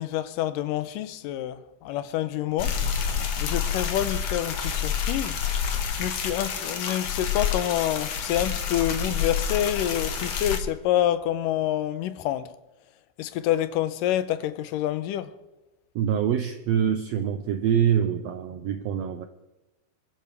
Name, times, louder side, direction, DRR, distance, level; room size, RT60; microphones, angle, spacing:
voice 1, 0.0-2.8 3.4-5.4 6.0-12.5 13.2-15.3, left 12 dB, 90° left, 2.3 m, -27 dB
sound 1, 2.6-10.6, left 7 dB, 55° left, 1.8 m, -28 dB
voice 2, 15.9-19.3, right 9 dB, 90° right, 1.5 m, -25 dB
26.5 x 12.0 x 3.4 m
omnidirectional pair, 3.8 m